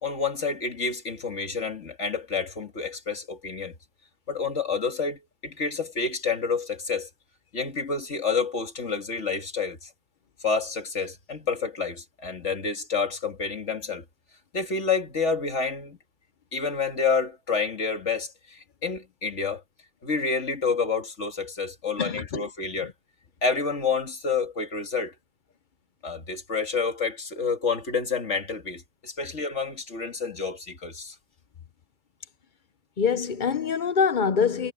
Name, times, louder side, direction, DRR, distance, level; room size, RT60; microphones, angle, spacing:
voice 1, 0.0-3.7 4.3-7.1 7.5-9.9 10.4-14.0 14.5-16.0 16.5-19.6 20.0-22.9 23.4-25.1 26.0-31.2, left 5 dB, 75° left, 2.6 m, -29 dB
voice 2, 22.0-22.5 33.0-34.7, left 6 dB, 50° left, 0.8 m, -24 dB
omnidirectional pair, 1.2 m